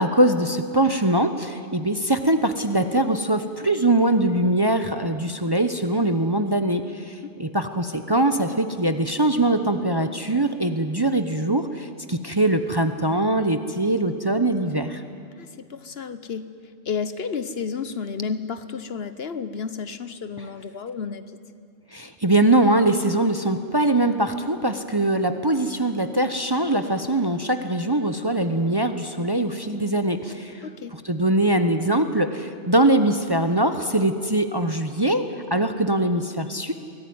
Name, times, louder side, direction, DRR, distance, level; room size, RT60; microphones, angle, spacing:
voice 1, 0.0-15.0 21.9-30.6 31.0-35.2 35.5-36.7, right 1 dB, 20° right, 8 dB, 0.9 m, -22 dB
voice 2, 15.4-16.5 16.8-21.4 30.6-31.0, left 6 dB, 55° left, 12 dB, 1.0 m, -31 dB
23.5 x 17.5 x 9.5 m, 2.4 s
omnidirectional pair, 1.3 m